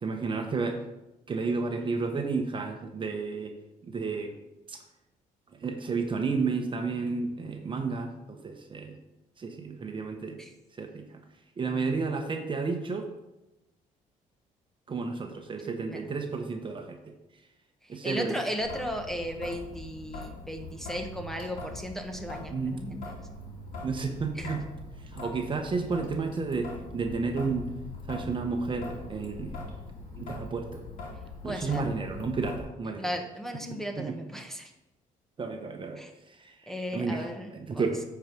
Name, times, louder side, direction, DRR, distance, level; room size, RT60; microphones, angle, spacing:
voice 1, 0.0-0.8 1.3-3.5 3.8-4.4 4.7-4.8 5.5-9.0 9.4-10.4 10.7-11.2 11.6-13.1 14.9-17.1 17.9-18.4 22.5-22.8 23.8-24.6 25.0-27.7 28.1-29.6 30.2-30.8 31.4-33.1 34.0-34.2 35.4-38.0, right 4 dB, 35° right, 4 dB, 1.1 m, -32 dB
voice 2, 17.8-23.0 24.4-24.5 31.4-31.9 33.0-34.7 36.0-36.1 36.7-37.8, equal, 5° left, 4 dB, 1.2 m, -36 dB
Traffic noise roadway noise / Drip / Trickle dribble, 18.6-32.6, left 2 dB, 75° left, 2.7 m, -42 dB
9.2 x 4.8 x 5.3 m, 0.96 s
cardioid pair, 90°, 14 cm